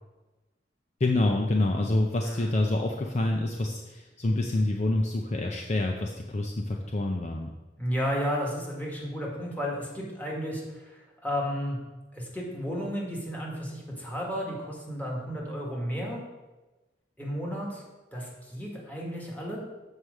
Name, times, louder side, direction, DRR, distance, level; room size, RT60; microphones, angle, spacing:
voice 1, 1.0-7.5, left 2 dB, 40° left, 2 dB, 0.6 m, -27 dB
voice 2, 7.8-11.8 12.1-16.2 17.2-17.8 18.1-19.6, equal, 10° left, -3 dB, 1.9 m, -33 dB
7.4 x 4.8 x 6.5 m, 1.1 s
head